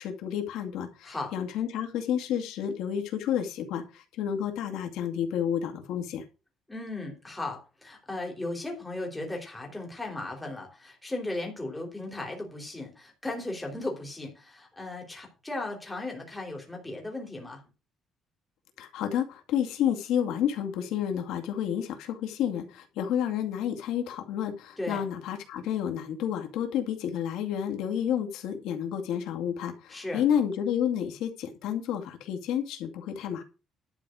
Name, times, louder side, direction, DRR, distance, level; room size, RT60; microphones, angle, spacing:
voice 1, 0.0-6.2 18.8-33.4, left 9 dB, 90° left, 3 dB, 2.2 m, -30 dB
voice 2, 6.7-17.6 24.8-25.0 29.9-30.2, left 2 dB, 5° left, 0 dB, 3.3 m, -36 dB
11.5 x 4.9 x 7.6 m, 0.32 s
cardioid pair, 170°, 0 cm